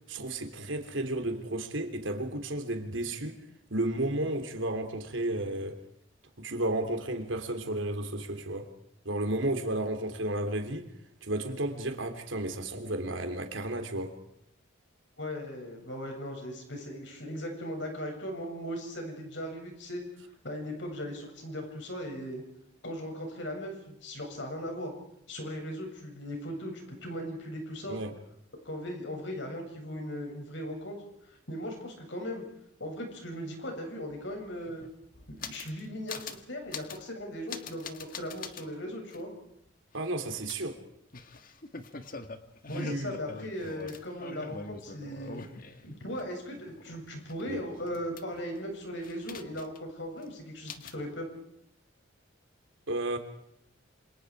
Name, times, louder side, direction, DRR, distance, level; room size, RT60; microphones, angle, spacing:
voice 1, 0.1-3.4 3.7-5.8 6.4-8.7 9.0-10.9 11.2-14.2 27.9-28.1 39.9-40.8 42.7-43.1 47.5-47.6 52.9-53.2, right 1 dB, 80° right, 3.4 m, -32 dB
voice 2, 15.2-20.0 20.4-22.4 22.8-24.9 25.3-28.0 28.6-31.0 31.3-32.4 32.8-34.8 35.4-39.3 42.7-45.4 45.8-51.3, equal, 65° left, 7.5 m, -38 dB
sound 1, 34.4-35.8 36.1-36.4 36.7-37.1 37.5-38.7 39.1-39.2 40.5-46.2 46.6-48.6 49.0-49.9 50.2-50.3 50.7-51.0, left 4 dB, 45° left, 1.7 m, -43 dB
28.0 x 27.0 x 5.0 m
head